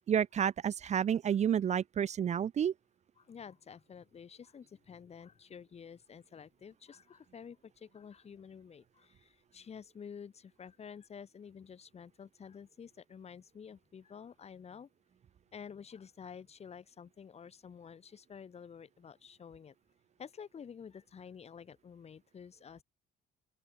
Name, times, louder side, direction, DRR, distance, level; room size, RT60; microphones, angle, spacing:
voice 1, 0.1-2.7, right 8 dB, 40° right, 0.9 m, -30 dB
voice 2, 3.2-14.9 15.5-19.7 20.2-22.8, left 7 dB, 40° left, 4.8 m, -50 dB
open air
cardioid pair, 110°, 17 cm